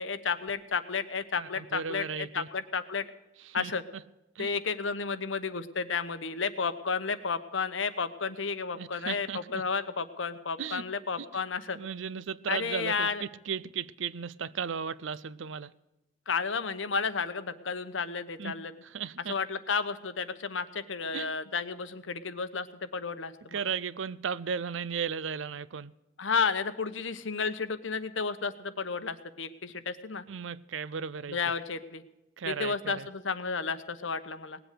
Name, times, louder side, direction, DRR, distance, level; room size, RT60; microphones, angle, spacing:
voice 1, 0.0-3.0 3.5-3.8 4.4-11.8 12.5-13.2 16.3-18.7 19.3-23.6 26.2-30.2 31.3-32.0 32.5-34.6, left 5 dB, 75° left, 1.0 m, -32 dB
voice 2, 1.4-2.5 3.5-3.7 4.4-4.5 8.8-9.6 10.6-10.8 11.2-11.3 11.7-15.7 18.4-18.5 18.9-19.3 21.1-21.3 23.5-25.9 30.3-31.4 32.4-33.1, right 6 dB, 75° right, 0.5 m, -35 dB
19.0 x 8.0 x 6.6 m
head